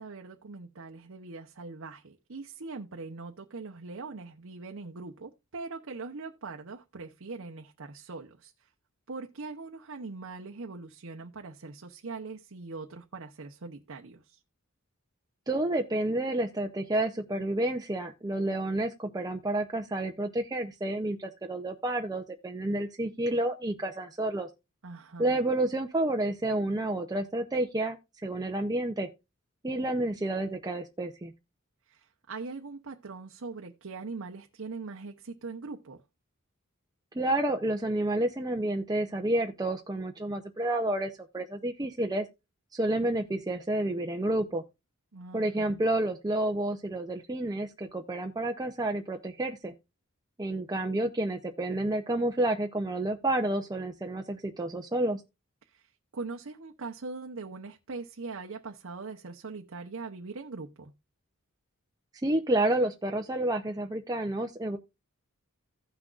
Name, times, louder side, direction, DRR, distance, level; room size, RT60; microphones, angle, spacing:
voice 1, 0.0-8.7 9.1-14.4 24.8-25.4 31.9-36.0 45.1-45.8 55.7-60.9, right 4 dB, 65° right, 0.8 m, -41 dB
voice 2, 15.5-24.5 25.2-28.0 28.2-29.1 29.6-31.3 37.1-42.2 42.7-44.6 45.3-49.7 50.4-55.2 62.2-64.8, right 1 dB, 20° right, 0.7 m, -30 dB
16.0 x 6.1 x 2.5 m
head